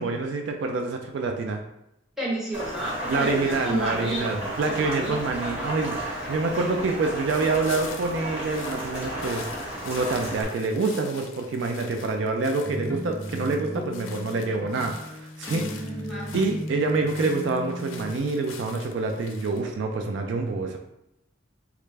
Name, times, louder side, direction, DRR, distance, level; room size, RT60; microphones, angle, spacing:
voice 1, 0.0-1.6 3.1-9.5 9.8-15.9 16.3-20.8, right 3 dB, 65° right, 4 dB, 0.3 m, -27 dB
voice 2, 2.2-4.3 4.6-5.2 6.5-6.7 16.1-16.3, right 1 dB, ahead, -7 dB, 0.9 m, -31 dB
Rain, 2.5-10.4, right 1 dB, 30° right, 1.2 m, -34 dB
sound 1, 7.3-19.6, left 6 dB, 85° left, 0.4 m, -45 dB
sound 2, 12.6-18.2, equal, 15° left, 0.4 m, -35 dB
3.2 x 2.4 x 3.2 m, 0.83 s
head